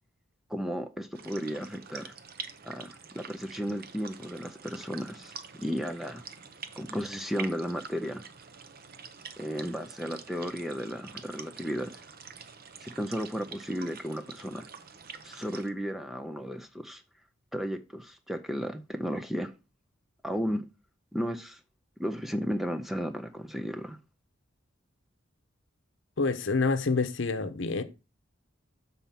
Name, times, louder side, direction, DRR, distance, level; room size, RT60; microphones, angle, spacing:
voice 1, 0.5-2.1 2.6-6.2 6.8-8.2 9.4-12.0 12.8-14.7 15.2-17.0 17.5-19.5 20.2-20.6 21.1-21.6 22.0-24.0, equal, ahead, 0.5 m, -34 dB
sound 1, 1.1-15.7, right 6 dB, 50° right, 0.7 m, -46 dB
voice 2, 26.2-27.8, left 4 dB, 70° left, 0.8 m, -27 dB
6.9 x 4.2 x 5.7 m
head